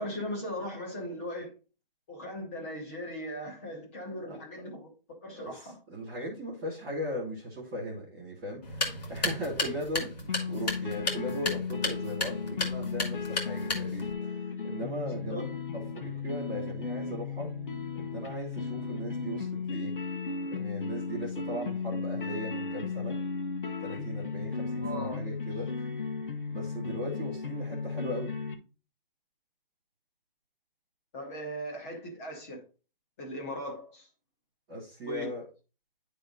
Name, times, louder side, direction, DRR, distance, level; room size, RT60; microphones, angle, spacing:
voice 1, 0.0-1.5 2.1-4.9 5.2-5.8 15.0-15.4 24.8-25.2 31.1-32.6 33.2-34.1 35.0-35.3, equal, 15° left, 1.1 m, -38 dB
voice 2, 4.3-4.7 5.3-17.5 17.9-19.9 20.5-23.2 23.8-25.7 26.5-28.3 34.7-35.5, equal, 5° right, 0.6 m, -38 dB
sound 1, 8.6-14.1, left 2 dB, 45° left, 1.9 m, -34 dB
sound 2, 10.3-28.5, left 5 dB, 60° left, 1.4 m, -35 dB
10.5 x 3.4 x 3.9 m
hypercardioid pair, 175°, 29 cm